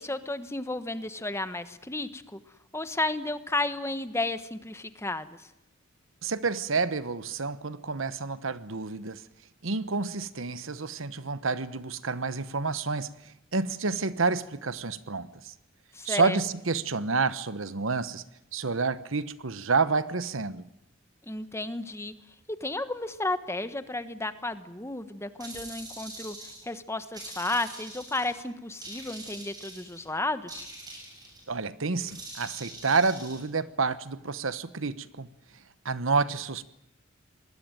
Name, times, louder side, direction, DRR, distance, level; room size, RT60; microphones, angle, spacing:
voice 1, 0.0-2.4 2.7-5.4 15.9-16.4 21.3-22.1 22.5-30.7, left 2 dB, 15° left, 1.3 m, -33 dB
voice 2, 6.2-9.2 9.6-15.5 16.0-18.2 18.5-20.7 31.5-35.3 35.8-36.6, right 4 dB, 75° right, 1.1 m, -29 dB
sound 1, 25.4-26.7 27.1-28.4 28.8-30.1 30.5-31.5 32.1-33.4, right 2 dB, 20° right, 7.6 m, -44 dB
25.5 x 20.0 x 9.1 m
head